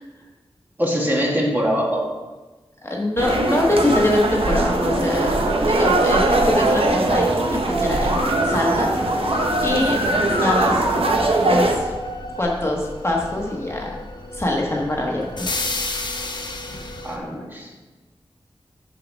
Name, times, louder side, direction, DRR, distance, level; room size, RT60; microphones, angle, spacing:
voice 1, 0.8-2.1 17.0-17.8, equal, 20° right, -2 dB, 1.7 m, -23 dB
voice 2, 2.8-5.4 5.7-7.4 7.7-8.1 8.4-10.0 10.3-10.9 11.2-11.9 12.4-13.9 14.3-15.5, left 1 dB, 25° left, -2 dB, 1.3 m, -23 dB
sound 1, 3.2-11.8, right 2 dB, 70° right, 0.9 m, -21 dB
sound 2, 4.8-17.2, left 2 dB, 45° left, 0.9 m, -33 dB
Musical instrument, 6.9-12.4, equal, 40° right, 2.4 m, -26 dB
6.7 x 5.9 x 5.2 m, 1.2 s
wide cardioid pair, 75°, 10 cm